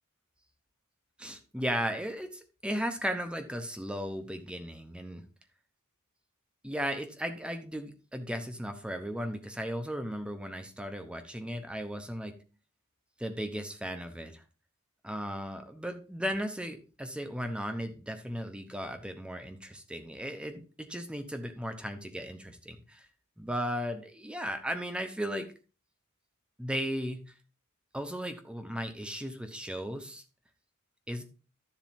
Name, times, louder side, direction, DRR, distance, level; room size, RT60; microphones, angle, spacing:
voice 1, 1.2-5.2 6.6-12.4 13.2-14.4 15.0-23.1 23.4-25.5 26.6-27.3 27.9-30.2 31.1-31.2, equal, 5° right, 7 dB, 0.9 m, -36 dB
12.0 x 7.3 x 2.7 m, 0.34 s
head